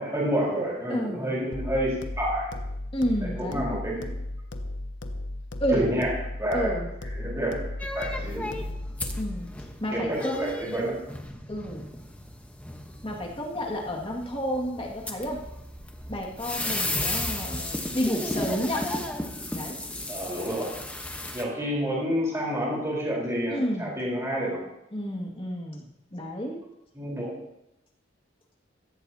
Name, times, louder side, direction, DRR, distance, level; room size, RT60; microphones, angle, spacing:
voice 1, 0.0-2.5 3.5-4.0 5.7-6.1 6.4-6.7 7.1-7.6 7.9-8.5 9.9-10.9 20.1-20.7 21.3-24.6 26.9-27.3, equal, 15° right, -5 dB, 4.1 m, -29 dB
voice 2, 0.9-1.4 2.9-3.7 5.6-5.9 6.5-6.9 9.2-9.5 9.8-10.6 11.5-11.9 13.0-15.4 16.1-18.9 19.5-19.8 23.5-24.0 24.9-25.8 26.1-26.6, equal, 30° left, -1 dB, 2.1 m, -30 dB
sound 1, 1.5-9.5, left 1 dB, 70° left, 1.1 m, -35 dB
sound 2, 7.8-21.4, left 1 dB, 5° left, 1.1 m, -34 dB
15.5 x 15.0 x 2.8 m, 0.86 s
head